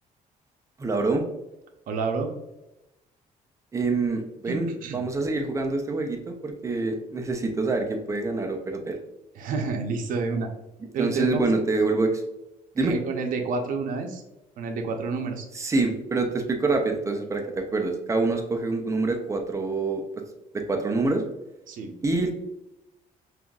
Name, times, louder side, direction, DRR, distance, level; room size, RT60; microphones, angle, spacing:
voice 1, 0.8-1.2 3.7-9.0 11.0-12.2 12.7-13.0 15.5-20.0 20.5-21.2 22.0-22.3, right 3 dB, 20° right, 3 dB, 0.6 m, -26 dB
voice 2, 1.9-2.3 4.5-5.0 9.3-10.5 10.9-11.5 12.8-14.2 14.6-15.4 21.7-21.9, right 4 dB, 70° right, 3 dB, 0.7 m, -29 dB
5.6 x 2.6 x 2.4 m, 0.93 s
cardioid pair, 140°, 15 cm